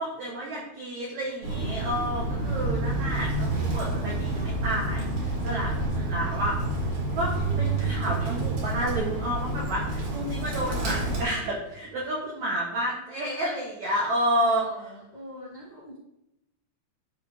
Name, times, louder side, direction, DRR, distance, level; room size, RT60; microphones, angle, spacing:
voice 1, 0.0-6.6 6.8-14.9, right 1 dB, 85° right, -3 dB, 1.6 m, -30 dB
Bird, 1.4-11.2, right 2 dB, 50° right, 2.9 m, -28 dB
voice 2, 14.4-16.0, left 1 dB, 85° left, -6 dB, 0.9 m, -44 dB
12.0 x 4.5 x 3.4 m, 0.87 s
omnidirectional pair, 5.2 m